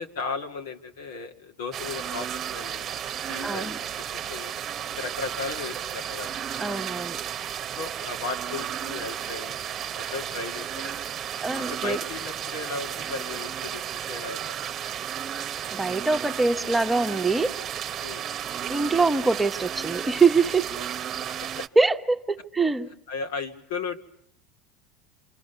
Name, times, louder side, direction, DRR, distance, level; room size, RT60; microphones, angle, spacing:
voice 1, 0.0-2.9 3.3-4.5 4.9-6.3 7.8-9.6 9.9-11.0 11.5-14.4 18.0-18.2 21.4-21.7 23.1-24.0, left 4 dB, 80° left, 2.1 m, -36 dB
sound 1, 1.7-21.7, right 9 dB, 45° right, 1.0 m, -33 dB
voice 2, 3.4-3.8 6.6-7.2 11.4-12.0 15.7-17.6 18.7-20.8 21.7-22.9, right 4 dB, 10° right, 1.3 m, -24 dB
27.0 x 26.5 x 6.9 m
hypercardioid pair, 85°, 0 cm